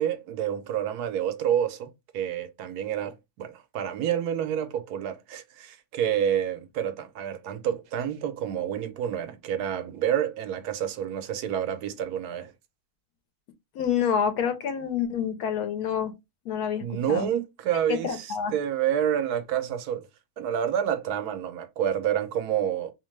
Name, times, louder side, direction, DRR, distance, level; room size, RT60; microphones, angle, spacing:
voice 1, 0.0-12.5 16.8-20.1 20.4-22.9, right 9 dB, 85° right, 1.1 m, -28 dB
voice 2, 13.7-16.1 16.4-17.3 17.9-18.5, left 7 dB, 80° left, 1.1 m, -27 dB
2.9 x 2.1 x 3.1 m
omnidirectional pair, 1.6 m